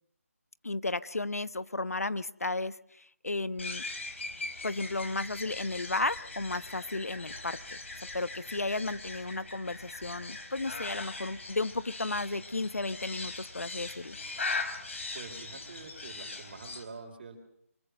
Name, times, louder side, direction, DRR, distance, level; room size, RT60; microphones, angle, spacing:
voice 1, 0.6-3.8 4.6-7.8 8.1-14.2, left 2 dB, 80° left, 15 dB, 1.1 m, -34 dB
sound 1, 3.6-16.8, left 3 dB, 55° left, 4.4 m, -40 dB
voice 2, 15.1-17.4, right 4 dB, 40° right, 4 dB, 5.1 m, -46 dB
25.0 x 22.0 x 6.8 m, 0.70 s
figure-of-eight pair, 155°, 8 cm